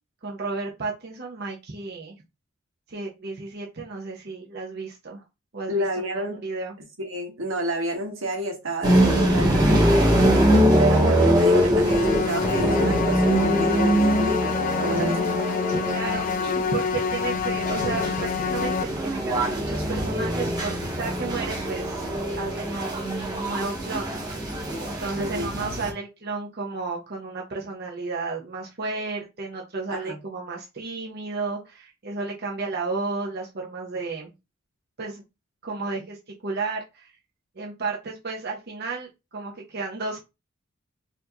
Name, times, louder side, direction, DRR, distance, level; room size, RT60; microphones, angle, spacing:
voice 1, 0.2-2.1 2.9-5.2 5.5-6.7 15.0-15.1 15.7-22.0 22.4-24.1 24.8-34.3 35.0-35.2 35.6-37.1 37.6-40.2, right 3 dB, 55° right, 0.8 m, -33 dB
voice 2, 5.7-6.4 7.0-10.1 10.8-15.2 25.2-25.5 29.9-30.2, right 1 dB, 85° right, 1.3 m, -30 dB
sound 1, 8.8-25.9, equal, 20° right, 1.1 m, -23 dB
sound 2, 11.8-18.8, left 6 dB, 40° left, 0.3 m, -27 dB
4.4 x 2.6 x 2.9 m
head